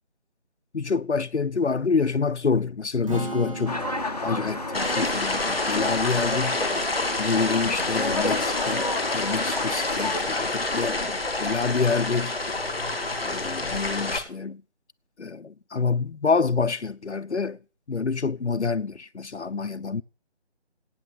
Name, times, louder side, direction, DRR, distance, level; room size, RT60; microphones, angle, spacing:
voice 1, 0.7-3.8 4.2-6.6 7.2-12.4 13.3-14.6 15.2-17.6 17.9-20.0, left 4 dB, 85° left, 0.7 m, -27 dB
Strum, 3.0-9.3, right 1 dB, 30° right, 2.1 m, -40 dB
sound 1, 3.7-10.2, left 2 dB, 35° left, 0.8 m, -31 dB
sound 2, 4.7-14.2, left 2 dB, ahead, 1.1 m, -28 dB
13.0 x 8.9 x 9.5 m
figure-of-eight pair, 165°, 34 cm